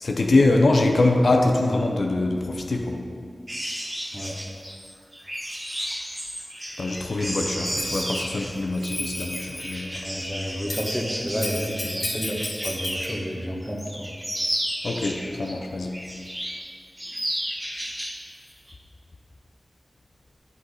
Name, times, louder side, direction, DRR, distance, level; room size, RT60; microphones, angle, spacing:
voice 1, 0.0-3.0 6.8-10.0 14.8-16.0, left 2 dB, 75° left, 2 dB, 0.6 m, -23 dB
sound 1, 3.5-13.3 13.6-15.5 15.9-16.7 17.0-18.2 18.5-18.7, equal, 20° right, 1.6 m, -33 dB
Bell, 7.8-8.2 8.7-9.8 10.7-10.9 11.4-13.1, left 1 dB, 40° left, 1.0 m, -33 dB
voice 2, 10.0-14.1, equal, 5° right, -2 dB, 1.2 m, -30 dB
8.1 x 4.1 x 4.8 m, 2.2 s
wide cardioid pair, 60°, 0 cm